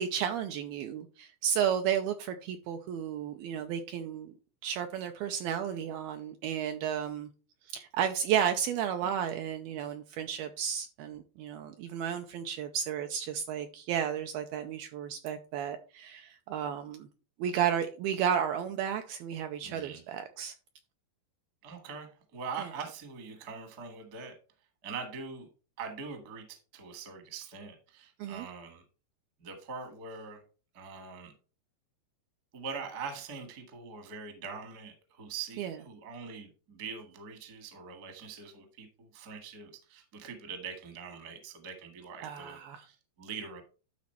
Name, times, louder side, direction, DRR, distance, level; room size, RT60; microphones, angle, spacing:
voice 1, 0.0-4.3 4.6-7.3 7.7-17.1 17.4-20.5 28.2-28.5 35.6-35.8 42.2-42.9, right 9 dB, 90° right, 2.2 m, -33 dB
voice 2, 19.6-20.0 21.6-24.3 24.8-25.5 25.8-28.8 29.4-30.4 30.7-31.3 32.5-42.6 42.9-43.6, right 5 dB, 55° right, 1.0 m, -43 dB
12.5 x 4.2 x 4.4 m
omnidirectional pair, 4.9 m